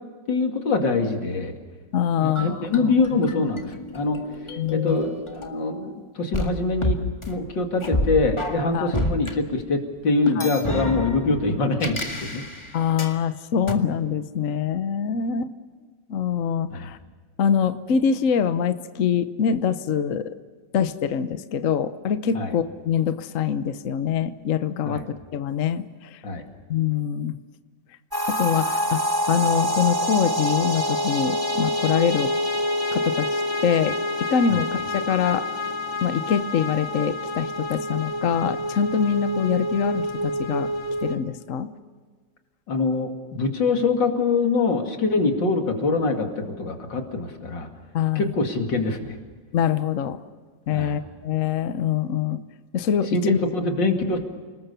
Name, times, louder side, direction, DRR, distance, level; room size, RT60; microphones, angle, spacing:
voice 1, 0.3-1.5 2.2-4.2 4.7-7.0 7.3-12.4 16.7-16.9 22.3-22.5 24.8-25.0 26.2-26.4 34.5-34.6 42.7-47.7 48.1-49.2 50.7-51.0 53.1-54.2, left 3 dB, 85° left, 4 dB, 3.1 m, -24 dB
voice 2, 1.9-2.9 4.6-5.0 8.7-8.9 10.4-10.5 12.7-15.5 16.1-17.0 17.4-20.3 20.7-26.2 26.7-27.4 28.3-29.0 29.3-32.3 32.9-35.4 36.0-40.7 41.0-41.7 47.9-48.3 49.5-50.2 50.7-52.4 52.7-53.4, left 8 dB, 55° left, 11 dB, 1.1 m, -24 dB
sound 1, 2.4-5.9 6.3-9.3 10.3-13.2 13.7-13.8, left 1 dB, 15° left, 1.8 m, -30 dB
sound 2, 28.1-41.2, equal, 10° right, 2.4 m, -26 dB
29.5 x 20.0 x 6.8 m, 1.5 s
omnidirectional pair, 1.9 m